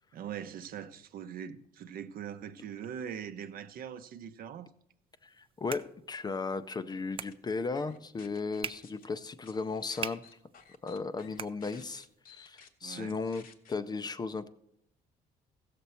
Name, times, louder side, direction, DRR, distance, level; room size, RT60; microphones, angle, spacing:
voice 1, 0.1-4.7 12.8-13.2, right 8 dB, 60° right, 0.7 m, -42 dB
voice 2, 5.2-10.2 10.8-14.5, left 4 dB, 25° left, 0.5 m, -36 dB
sound 1, 5.2-12.2, right 7 dB, 30° right, 0.4 m, -46 dB
sound 2, 6.9-7.3 7.7-9.1 9.4-13.7, left 7 dB, 55° left, 1.0 m, -56 dB
15.5 x 6.8 x 4.2 m
cardioid pair, 110°, 17 cm